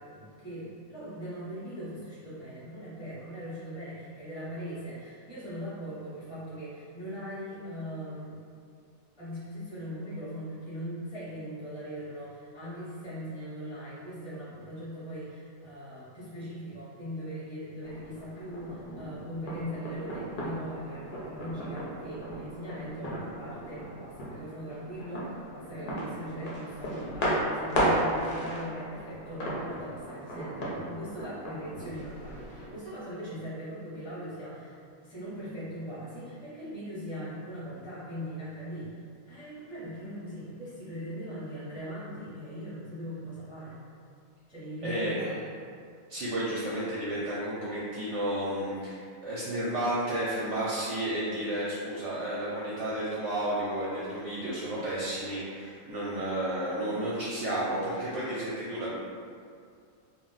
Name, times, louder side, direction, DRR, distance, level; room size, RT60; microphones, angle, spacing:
voice 1, 0.0-8.4 9.2-39.0 39.3-43.8 44.5-45.4, equal, 5° right, -11 dB, 0.6 m, -40 dB
sound 1, 17.8-32.7, right 1 dB, 55° left, 0.6 m, -35 dB
voice 2, 44.8-45.3 46.1-58.9, right 1 dB, 65° right, -8 dB, 0.8 m, -32 dB
2.4 x 2.1 x 3.8 m, 2.3 s
omnidirectional pair, 1.5 m